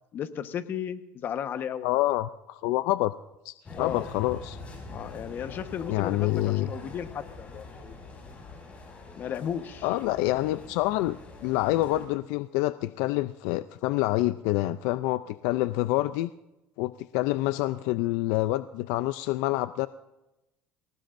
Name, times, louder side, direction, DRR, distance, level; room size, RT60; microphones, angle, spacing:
voice 1, 0.1-2.0 3.7-4.1 4.9-8.0 9.1-9.9, left 9 dB, 45° left, 9 dB, 1.2 m, -35 dB
voice 2, 1.8-3.1 3.4-4.6 5.9-6.7 9.8-16.3 16.8-19.9, left 17 dB, 80° left, 13 dB, 0.4 m, -27 dB
sound 1, 3.6-12.1, left 3 dB, 25° left, 5.8 m, -44 dB
28.5 x 18.0 x 2.6 m, 0.96 s
cardioid pair, 120°, 5 cm